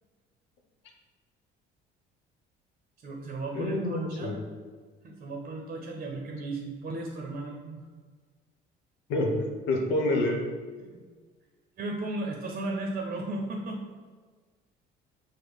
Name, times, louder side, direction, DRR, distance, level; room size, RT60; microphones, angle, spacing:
voice 1, 3.0-4.5 5.0-7.8 10.8-10.9 11.8-13.8, right 2 dB, 45° right, 1 dB, 0.7 m, -35 dB
voice 2, 3.5-4.3 9.1-9.3 9.7-10.4, left 2 dB, 75° left, 0 dB, 1.0 m, -27 dB
6.1 x 2.1 x 3.5 m, 1.5 s
supercardioid pair, 90°, 20 cm